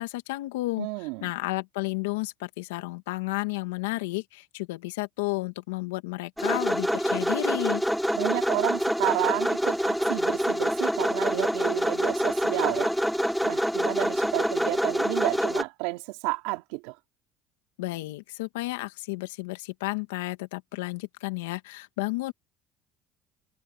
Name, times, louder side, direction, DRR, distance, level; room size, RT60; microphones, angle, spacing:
voice 1, 0.0-7.8 17.8-22.3, left 21 dB, 90° left, 2.0 m, -32 dB
voice 2, 0.8-1.3 8.1-12.9 13.4-16.9, right 24 dB, 80° right, 3.3 m, -31 dB
sound 1, 6.4-15.6, equal, ahead, 3.7 m, -26 dB
supercardioid pair, 85°, 0 cm